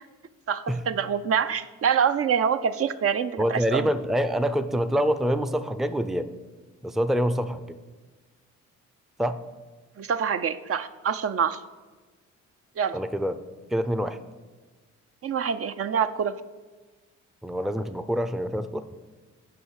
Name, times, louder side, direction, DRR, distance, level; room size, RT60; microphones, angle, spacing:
voice 1, 0.5-3.9 10.0-11.6 12.8-13.0 15.2-16.3, right 7 dB, 50° right, 11 dB, 0.5 m, -25 dB
voice 2, 3.4-6.3 6.8-7.8 9.2-9.4 12.9-13.4 13.7-14.2 17.4-18.8, equal, ahead, 10 dB, 0.5 m, -26 dB
9.8 x 5.4 x 6.5 m, 1.3 s
cardioid pair, 90°, 30 cm